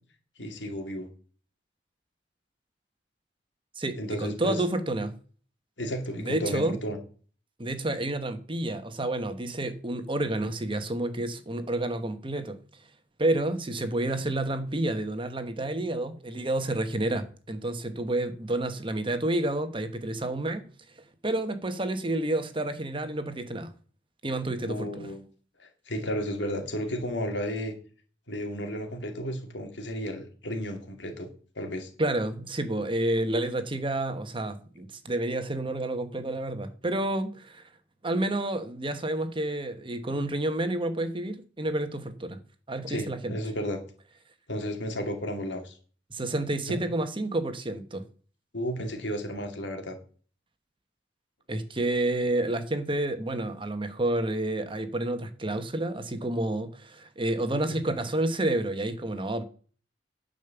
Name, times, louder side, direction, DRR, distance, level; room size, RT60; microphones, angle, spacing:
voice 1, 0.4-1.1 4.0-4.6 5.8-7.0 24.7-25.2 25.6-27.7 28.3-31.3 31.5-31.9 42.9-43.8 44.5-45.8 46.7-46.8 48.5-50.0, equal, 85° left, 2.5 m, -33 dB
voice 2, 3.8-5.1 6.1-6.8 7.6-12.6 13.2-20.7 21.2-23.7 24.2-25.1 32.0-37.7 38.0-42.4 42.7-43.3 46.1-48.0 51.5-59.4, right 1 dB, 30° right, 1.2 m, -29 dB
10.5 x 5.3 x 7.1 m
head